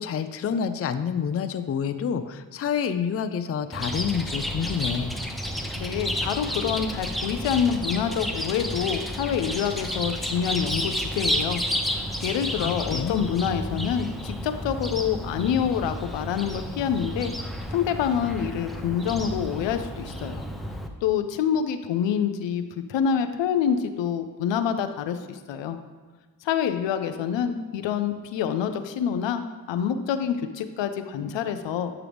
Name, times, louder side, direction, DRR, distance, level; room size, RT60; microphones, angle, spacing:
voice 1, 0.0-5.1 12.6-13.3, left 7 dB, 35° left, 10 dB, 0.4 m, -28 dB
Chirp tweet, 3.7-20.9, equal, ahead, 0.7 m, -31 dB
voice 2, 5.8-11.6 12.2-17.3 17.7-20.5 21.0-22.6 22.9-25.8 26.4-31.9, left 8 dB, 80° left, 8 dB, 0.6 m, -26 dB
7.9 x 4.8 x 3.4 m, 1.3 s
supercardioid pair, 50°, 44 cm